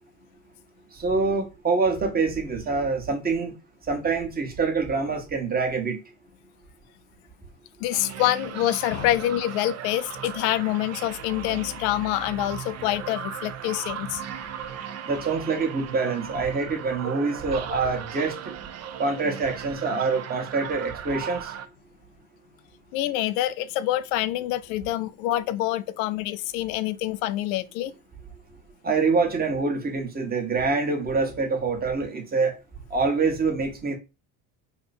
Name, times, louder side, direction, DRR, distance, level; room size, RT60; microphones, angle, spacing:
voice 1, 0.9-3.5 3.9-6.0 15.0-18.5 19.0-21.5 28.8-32.5 32.9-34.0, right 4 dB, 20° right, 1.2 m, -25 dB
voice 2, 7.8-14.2 22.9-27.9, left 14 dB, 75° left, 0.5 m, -26 dB
sound 1, 7.9-21.7, right 9 dB, 40° right, 0.5 m, -37 dB
2.9 x 2.2 x 4.2 m
hypercardioid pair, 75°, 42 cm